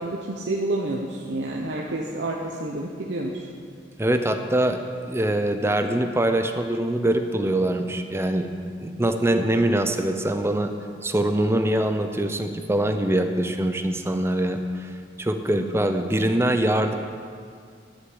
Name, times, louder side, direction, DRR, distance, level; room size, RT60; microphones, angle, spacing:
voice 1, 0.0-3.5, right 2 dB, 75° right, -1 dB, 0.9 m, -29 dB
voice 2, 4.0-8.5 8.8-10.7 11.0-14.9 15.2-16.9, right 1 dB, 15° right, 7 dB, 0.6 m, -23 dB
11.5 x 6.5 x 7.8 m, 2.2 s
head